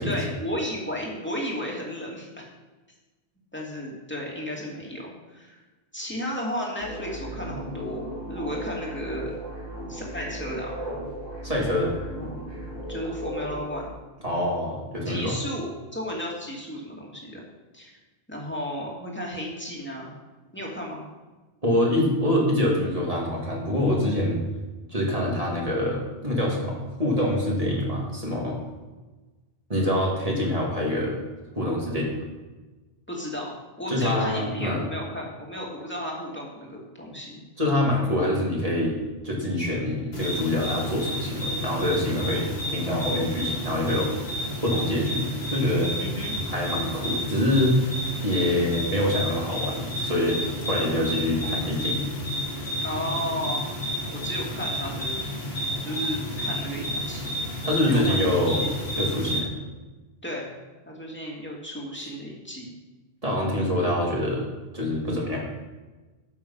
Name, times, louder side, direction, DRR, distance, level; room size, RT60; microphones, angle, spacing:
voice 1, 0.0-2.4 3.5-5.6 5.9-9.3 9.9-10.8 11.8-12.4 12.9-13.9 15.0-17.4 17.7-18.0 18.3-20.1 20.5-21.0 33.1-37.4 46.0-46.3 52.8-53.7 54.1-55.2 55.7-57.4 57.7-58.7 60.2-60.5 60.8-62.7, equal, 10° left, -3 dB, 2.7 m, -34 dB
sound 1, 6.8-13.9, right 1 dB, 55° right, 4.8 m, -36 dB
voice 2, 11.4-11.9 14.2-15.4 21.6-24.4 24.9-28.6 29.7-31.2 31.5-32.2 33.9-34.8 37.6-39.0 39.2-45.9 46.5-47.8 48.2-52.1 57.6-58.7 59.0-59.5 63.2-64.4 64.7-65.4, left 1 dB, 35° right, -3 dB, 2.8 m, -25 dB
sound 2, 40.1-59.4, equal, 70° left, 2.8 m, -31 dB
13.0 x 6.9 x 5.6 m, 1.2 s
omnidirectional pair, 1.1 m